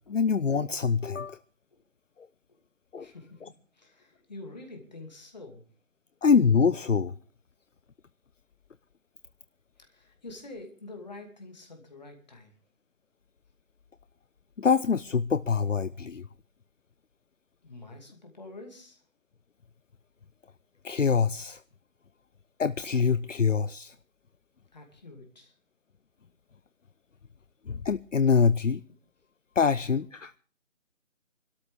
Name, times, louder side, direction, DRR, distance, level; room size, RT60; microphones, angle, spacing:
voice 1, 0.1-1.4 2.9-3.1 6.2-7.1 14.6-16.2 20.8-21.6 22.6-23.9 27.7-28.8 29.6-30.3, left 6 dB, 70° left, 15 dB, 0.7 m, -24 dB
voice 2, 3.0-5.6 9.8-12.5 17.6-19.0 24.7-25.5 26.2-26.3, left 2 dB, 30° left, 4 dB, 2.6 m, -47 dB
25.0 x 13.0 x 3.5 m, 0.41 s
figure-of-eight pair, 165°, 40 cm